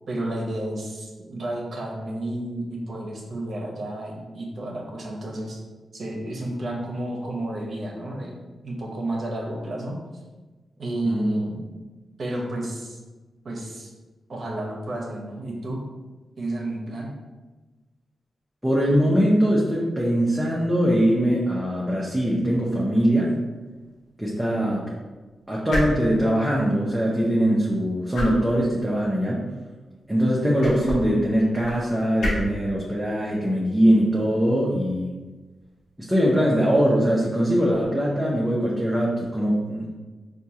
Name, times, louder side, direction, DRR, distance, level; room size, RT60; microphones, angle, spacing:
voice 1, 0.1-5.6 5.9-10.0 10.8-11.7 12.2-13.0 13.4-13.9 14.3-15.8 16.4-17.1, right 1 dB, 60° right, -1 dB, 0.8 m, -31 dB
voice 2, 11.0-11.4 18.6-23.3 24.2-24.8 25.5-29.5 30.1-35.1 36.0-40.0, equal, 10° right, -5 dB, 0.7 m, -22 dB
sound 1, 22.7-36.2, equal, 80° left, 1.0 m, -36 dB
4.4 x 2.3 x 2.8 m, 1.3 s
cardioid pair, 65°, 0 cm